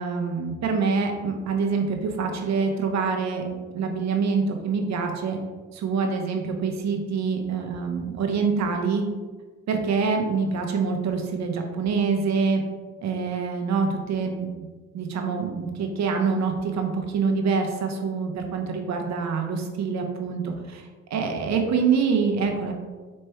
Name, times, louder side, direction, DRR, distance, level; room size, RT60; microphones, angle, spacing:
voice 1, 0.0-3.4 3.7-5.4 5.7-9.0 9.7-12.6 13.0-14.5 14.9-20.8 21.1-22.7, right 5 dB, 65° right, 3 dB, 0.8 m, -25 dB
4.3 x 3.3 x 3.4 m, 1.4 s
cardioid pair, 70°, 30 cm